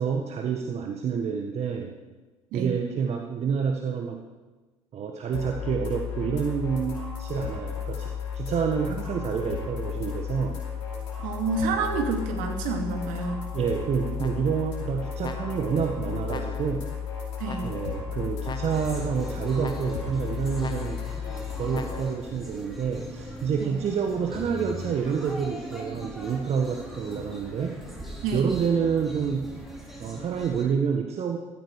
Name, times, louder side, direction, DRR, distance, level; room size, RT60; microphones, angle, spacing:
voice 1, 0.0-1.9 2.5-4.2 4.9-10.6 13.5-16.9 17.6-21.0 21.6-27.8 28.3-29.5 30.0-31.4, right 6 dB, 45° right, 3 dB, 1.5 m, -28 dB
sound 1, 5.3-22.0, left 7 dB, 75° left, 4.2 m, -34 dB
voice 2, 11.2-13.5 17.4-17.7 23.6-23.8 28.2-28.5, right 4 dB, 65° right, 4 dB, 2.5 m, -29 dB
sound 2, 14.2-14.7 15.2-15.8 16.3-16.9 17.4-18.0 18.4-19.1 19.6-20.2 20.6-21.2 21.7-22.3, left 4 dB, 30° left, 1.3 m, -41 dB
sound 3, 18.7-30.7, equal, ahead, 5.2 m, -40 dB
15.5 x 13.5 x 4.8 m, 1.2 s
hypercardioid pair, 60°, 15 cm